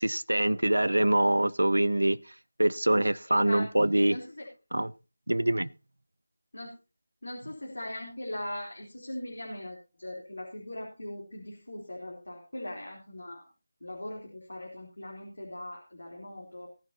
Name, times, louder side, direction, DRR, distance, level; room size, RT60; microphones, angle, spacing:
voice 1, 0.0-2.2 2.6-4.2 4.7-4.9 5.3-5.7, right 1 dB, 90° right, 0.6 m, -24 dB
voice 2, 3.3-3.6 4.1-4.5 6.5-6.7 7.2-13.4 13.8-16.7, left 1 dB, 80° left, 3.6 m, -40 dB
18.5 x 10.5 x 2.8 m
figure-of-eight pair, 165°, 0 cm